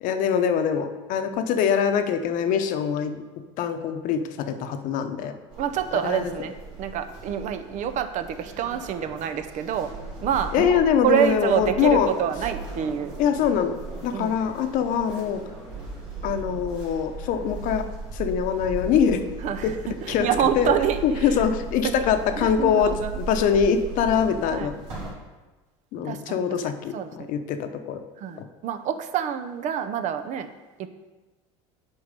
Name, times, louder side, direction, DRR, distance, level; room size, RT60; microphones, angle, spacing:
voice 1, 0.0-3.2 3.6-5.3 5.9-6.3 10.5-12.1 13.2-13.8 14.0-15.4 16.2-17.8 18.1-19.2 19.6-19.8 20.1-20.3 20.5-20.7 21.0-24.7 25.9-28.0 28.4-28.5, left 7 dB, 60° left, 8 dB, 0.8 m, -23 dB
sound 1, 5.5-25.1, right 2 dB, 70° right, 2.5 m, -37 dB
voice 2, 5.6-9.9 10.2-10.8 11.0-13.1 14.1-14.3 19.4-21.4 21.8-22.0 22.4-23.1 24.5-24.7 26.0-27.3 28.2-30.5 30.8-30.9, right 9 dB, 50° right, 9 dB, 0.7 m, -27 dB
8.1 x 4.7 x 5.3 m, 1.2 s
supercardioid pair, 100°, 15 cm